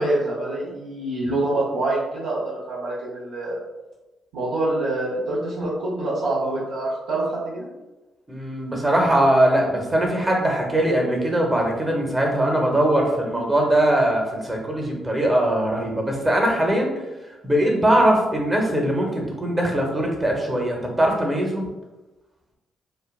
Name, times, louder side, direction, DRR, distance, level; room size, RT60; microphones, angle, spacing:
voice 1, 0.0-2.4 2.7-3.6 4.3-7.7, right 2 dB, 75° right, -9 dB, 0.6 m, -25 dB
voice 2, 8.3-16.9 17.4-21.7, right 1 dB, 20° right, 1 dB, 0.8 m, -21 dB
3.1 x 2.1 x 2.3 m, 1.1 s
hypercardioid pair, 45°, 0 cm